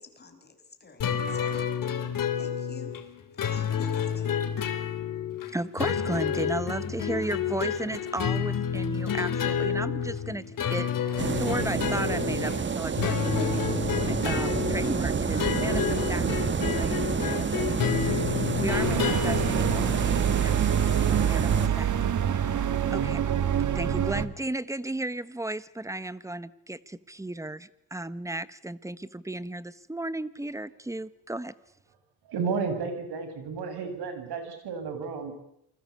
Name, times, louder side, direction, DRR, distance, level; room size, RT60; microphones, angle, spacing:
voice 1, 0.0-1.6 2.3-3.0 3.3-4.3, left 4 dB, 25° left, 6 dB, 5.9 m, -48 dB
sound 1, 1.0-20.2, left 7 dB, 55° left, 3.6 m, -30 dB
voice 2, 5.5-13.6 14.0-22.6 22.9-23.2 23.7-31.5, right 1 dB, 10° right, 16 dB, 1.1 m, -35 dB
sound 2, 11.2-21.7, right 6 dB, 30° right, 1.2 m, -29 dB
sound 3, 18.7-24.3, right 9 dB, 45° right, 2.0 m, -26 dB
voice 3, 32.3-35.4, right 5 dB, 70° right, 8 dB, 7.2 m, -32 dB
28.5 x 21.0 x 8.5 m, 0.77 s
cardioid pair, 120°, 40 cm